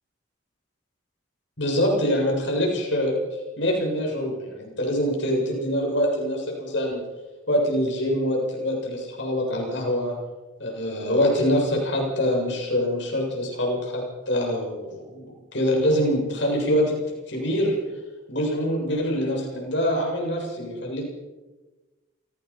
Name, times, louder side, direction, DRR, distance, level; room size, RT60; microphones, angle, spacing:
voice 1, 1.6-3.1 3.6-7.0 7.5-10.1 10.6-17.0 17.3-17.8 18.3-21.1, equal, 65° left, -1 dB, 7.4 m, -24 dB
29.0 x 18.0 x 5.7 m, 1.2 s
head